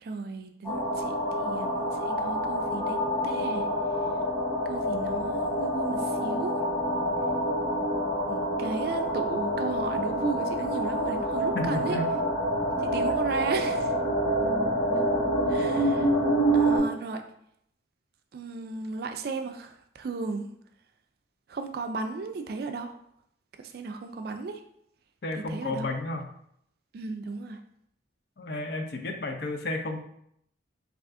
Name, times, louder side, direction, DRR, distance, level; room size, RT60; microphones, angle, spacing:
voice 1, 0.0-1.2 1.4-3.7 4.7-6.6 8.3-12.0 12.8-13.9 15.5-16.1 16.5-17.2 18.3-20.5 21.5-22.9 23.6-24.6 25.5-25.9 26.9-27.6, right 3 dB, 55° right, 6 dB, 0.3 m, -35 dB
sound 1, 0.6-16.8, equal, 15° left, 1.5 m, -27 dB
voice 2, 11.5-12.1 25.2-26.3 28.4-30.0, left 2 dB, 55° left, 4 dB, 0.5 m, -32 dB
3.4 x 2.4 x 3.6 m, 0.71 s
head